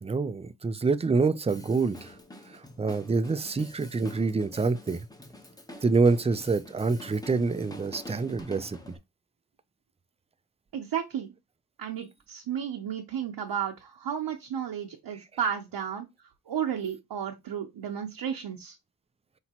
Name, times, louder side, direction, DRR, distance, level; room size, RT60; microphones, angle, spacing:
voice 1, 0.0-2.1 2.5-5.0 5.8-8.8, right 4 dB, 15° right, 0.4 m, -26 dB
Drum kit, 1.5-9.0, left 1 dB, 10° left, 0.8 m, -47 dB
voice 2, 10.7-11.3 11.8-16.1 16.5-18.8, right 8 dB, 80° right, 0.9 m, -33 dB
5.7 x 2.9 x 2.9 m
wide cardioid pair, 105°, 39 cm